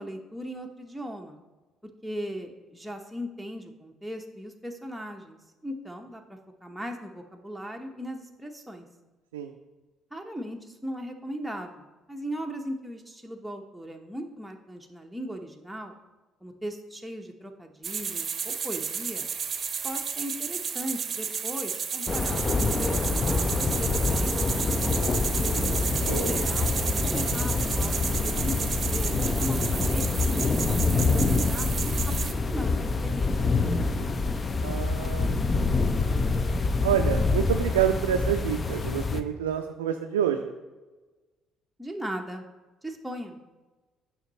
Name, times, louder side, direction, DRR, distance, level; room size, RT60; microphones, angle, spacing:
voice 1, 0.0-1.4 2.0-6.2 6.6-8.9 10.1-15.9 16.4-19.3 19.8-24.5 26.1-26.7 27.0-30.0 30.3-34.1 41.8-42.4 42.8-43.4, equal, ahead, 2 dB, 0.8 m, -38 dB
sound 1, 17.8-32.3, right 6 dB, 45° right, 0.6 m, -32 dB
sound 2, 22.1-39.2, left 3 dB, 35° left, 0.6 m, -26 dB
voice 2, 25.4-26.4 34.6-36.1 36.8-40.5, right 10 dB, 85° right, 4 dB, 0.3 m, -29 dB
9.1 x 5.4 x 3.0 m, 1.2 s
hypercardioid pair, 50°, 0 cm